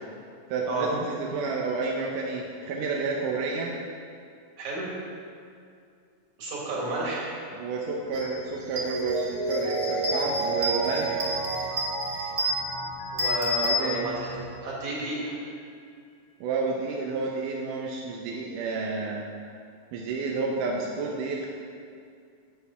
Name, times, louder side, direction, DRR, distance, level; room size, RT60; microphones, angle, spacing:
voice 1, 0.5-3.7 7.5-11.2 13.6-14.1 16.4-19.2 19.9-21.5, right 4 dB, 80° right, -2 dB, 2.4 m, -30 dB
voice 2, 4.6-4.9 6.4-7.3 13.1-14.3 14.6-15.4, right 2 dB, 65° right, -5 dB, 3.6 m, -31 dB
sound 1, 8.1-8.3 8.6-14.5, equal, 35° right, 1.8 m, -31 dB
Mallet percussion, 8.8-14.3 14.7-14.8, right 3 dB, 65° left, 3.3 m, -31 dB
10.5 x 8.1 x 5.5 m, 2.3 s
omnidirectional pair, 3.6 m